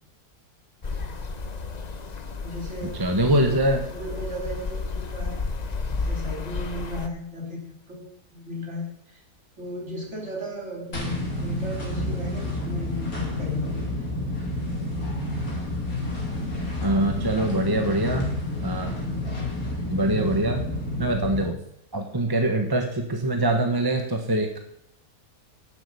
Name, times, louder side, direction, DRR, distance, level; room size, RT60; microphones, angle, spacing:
sound 1, 0.8-7.1, left 4 dB, 35° left, 0.9 m, -32 dB
voice 1, 2.4-3.2 3.4-3.6 3.9-5.5 6.1-9.2 9.6-13.8 17.3-17.8 18.9-19.5, left 1 dB, 50° right, 0 dB, 3.7 m, -35 dB
voice 2, 3.0-3.8 16.8-18.3 18.6-18.9 19.9-20.6 21.0-21.6 21.9-24.6, right 1 dB, 15° right, 4 dB, 1.2 m, -23 dB
sound 2, 10.9-21.5, left 1 dB, 70° left, 3.6 m, -30 dB
11.5 x 7.9 x 6.9 m, 0.74 s
omnidirectional pair, 1.6 m